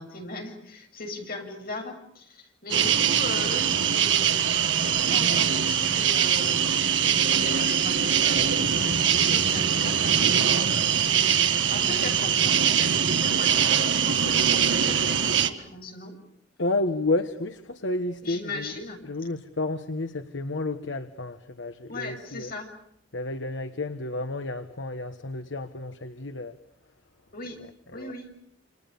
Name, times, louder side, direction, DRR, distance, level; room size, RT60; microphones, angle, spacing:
voice 1, 0.0-16.2 18.2-19.0 21.9-22.7 27.3-27.6 27.9-28.3, left 2 dB, 50° left, 3 dB, 7.4 m, -38 dB
sound 1, 2.7-15.5, right 8 dB, 70° right, 1.8 m, -22 dB
voice 2, 16.6-18.7 19.0-22.5 23.1-26.6 27.9-28.1, left 2 dB, 70° left, 9 dB, 1.3 m, -31 dB
29.0 x 27.5 x 7.0 m, 0.71 s
head